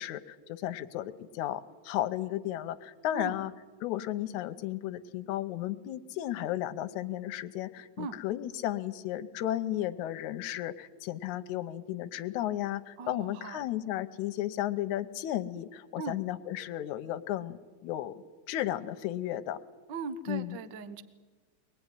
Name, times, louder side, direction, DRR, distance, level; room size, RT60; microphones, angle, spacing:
voice 1, 0.0-3.5 3.8-19.6 20.3-20.6, left 13 dB, 70° left, 9 dB, 2.1 m, -34 dB
voice 2, 3.1-3.4 8.0-8.2 13.0-13.7 16.0-16.2 19.9-21.0, right 4 dB, 80° right, 11 dB, 1.0 m, -39 dB
24.0 x 20.0 x 9.9 m, 1.4 s
omnidirectional pair, 4.0 m